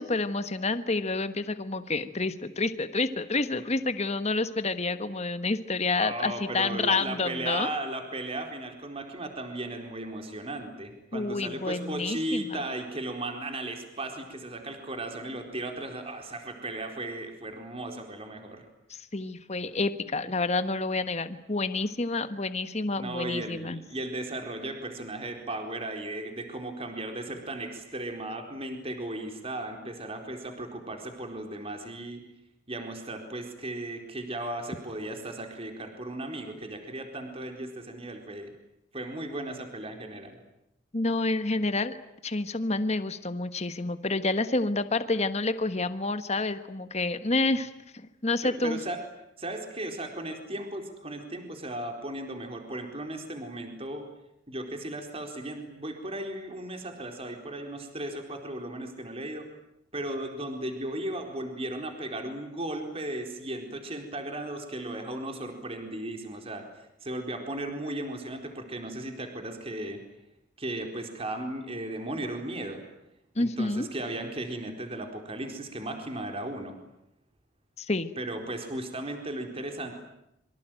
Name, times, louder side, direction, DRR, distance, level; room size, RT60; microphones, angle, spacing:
voice 1, 0.0-7.7 11.1-12.6 18.9-23.8 40.9-42.0 42.2-48.8 73.3-73.9 77.8-78.1, left 3 dB, 35° left, 11 dB, 1.4 m, -29 dB
voice 2, 6.0-18.6 22.9-32.2 32.7-38.5 38.9-40.4 48.4-49.0 49.4-54.0 54.5-59.5 59.9-66.6 67.0-70.0 70.6-72.8 73.4-76.8 78.2-79.9, right 1 dB, 30° right, 4 dB, 4.2 m, -36 dB
26.5 x 24.5 x 9.2 m, 0.83 s
head